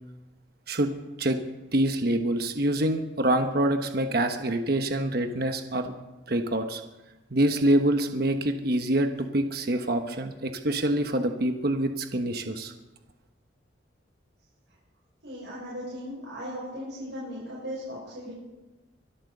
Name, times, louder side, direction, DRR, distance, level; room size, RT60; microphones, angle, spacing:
voice 1, 1.7-5.9 6.3-6.8 7.3-12.7, right 1 dB, 55° right, 6 dB, 1.2 m, -26 dB
voice 2, 15.2-18.3, equal, 80° right, -8 dB, 6.8 m, -37 dB
24.0 x 8.9 x 6.7 m, 1.1 s
head